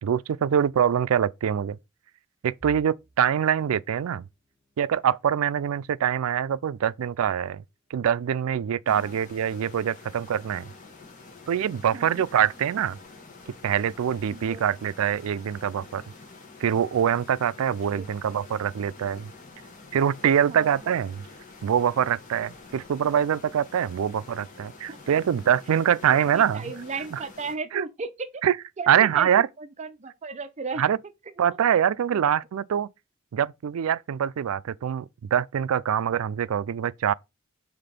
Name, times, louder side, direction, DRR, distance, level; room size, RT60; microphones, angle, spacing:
voice 1, 0.0-1.8 2.4-4.2 4.8-7.6 7.9-10.7 11.5-13.0 13.6-16.0 16.6-19.3 19.9-21.2 21.6-26.7 27.1-27.2 27.7-27.9 28.4-28.6 28.9-29.5 30.8-31.0 31.4-32.9 33.3-37.1, right 9 dB, 90° right, 0.3 m, -24 dB
sound 1, 2.6-14.4 14.9-15.1 15.5-15.7 16.5-17.0, right 2 dB, ahead, 1.6 m, -57 dB
sound 2, 8.9-27.6, left 3 dB, 40° left, 1.9 m, -48 dB
voice 2, 14.3-14.7 18.0-18.2 20.5-20.7 24.9-25.0 26.1-28.3 28.8-29.3 29.6-30.8, right 4 dB, 30° right, 0.5 m, -35 dB
5.9 x 3.6 x 5.2 m
head